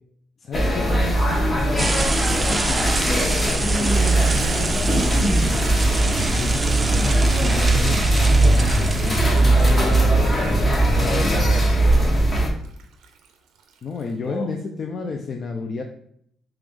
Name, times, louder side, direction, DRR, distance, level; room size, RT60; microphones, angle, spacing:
voice 1, 0.4-2.9 3.8-5.8 6.4-9.4 13.8-15.8, left 5 dB, 50° left, 3 dB, 0.4 m, -32 dB
sound 1, 0.5-12.5, right 1 dB, 35° left, 0.9 m, -19 dB
sound 2, 1.8-10.0, right 3 dB, 25° right, 0.4 m, -28 dB
Toilet flush, 3.5-14.1, right 5 dB, 85° right, 0.5 m, -40 dB
voice 2, 10.1-12.1 14.2-14.5, left 3 dB, 70° left, 2 dB, 0.8 m, -33 dB
3.3 x 3.0 x 3.6 m, 0.68 s
cardioid pair, 90°, 0 cm